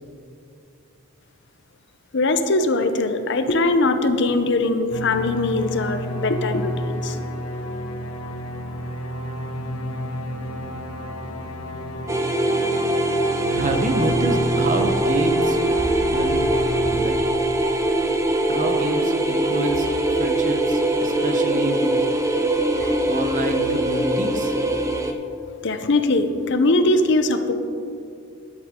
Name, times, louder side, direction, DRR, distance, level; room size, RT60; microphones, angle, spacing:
voice 1, 2.1-7.2 25.6-27.5, left 2 dB, 55° left, 8 dB, 0.7 m, -21 dB
sound 1, 4.9-17.1, left 1 dB, 85° left, 1.0 m, -30 dB
sound 2, 12.1-25.1, right 1 dB, 15° right, 0.6 m, -22 dB
sound 3, 13.5-25.0, equal, 5° left, 2.6 m, -39 dB
voice 2, 13.5-15.6 16.1-16.4 16.9-17.2 18.5-19.9 20.1-21.9 23.1-24.5, right 1 dB, 35° right, 5 dB, 0.9 m, -27 dB
13.0 x 11.0 x 3.7 m, 2.5 s
head